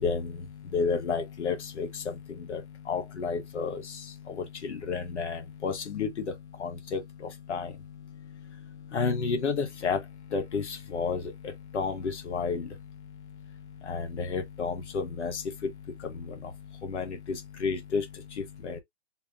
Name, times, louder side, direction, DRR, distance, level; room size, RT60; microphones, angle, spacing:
voice 1, 0.0-18.8, left 5 dB, 75° left, 1.6 m, -32 dB
4.7 x 2.1 x 4.1 m
hypercardioid pair, 145°, 35 cm